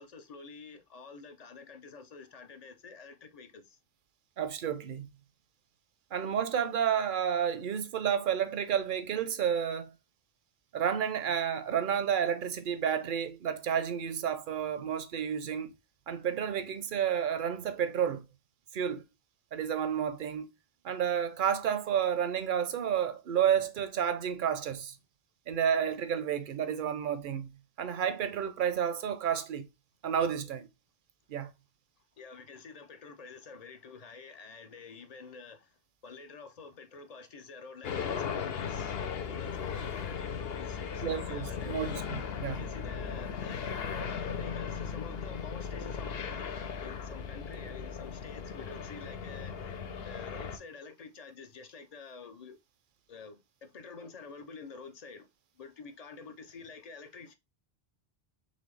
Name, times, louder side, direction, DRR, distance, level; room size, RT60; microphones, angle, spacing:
voice 1, 0.0-3.8 32.2-35.7 36.0-39.0 39.3-42.0 42.5-46.5 46.8-49.7 50.0-52.6 53.1-55.3 55.6-57.3, left 4 dB, 50° left, 0.6 m, -48 dB
voice 2, 4.4-5.1 6.1-9.9 10.7-15.7 16.1-18.2 18.7-19.0 19.5-20.5 20.8-24.9 25.5-27.5 27.8-29.7 30.0-30.7 31.3-31.5 41.0-42.7, right 8 dB, 60° right, 0.7 m, -31 dB
sound 1, 37.8-50.6, left 6 dB, 75° left, 0.9 m, -37 dB
4.1 x 3.2 x 3.1 m
omnidirectional pair, 1.0 m